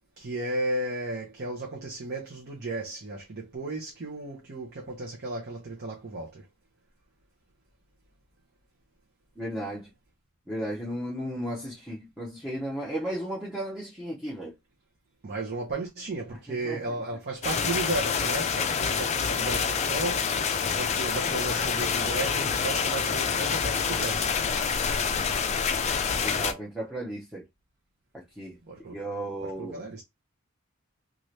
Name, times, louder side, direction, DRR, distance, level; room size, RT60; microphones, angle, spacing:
voice 1, 0.2-6.4 15.2-20.3 20.7-24.3 28.7-29.0 29.4-30.0, right 2 dB, 55° right, 0.7 m, -34 dB
voice 2, 9.4-9.9 10.5-14.5 16.3-16.8 26.2-27.4 28.1-28.6 28.9-29.8, right 1 dB, 5° right, 0.7 m, -35 dB
sound 1, 17.4-26.5, left 6 dB, 35° left, 0.4 m, -27 dB
2.8 x 2.4 x 3.1 m
head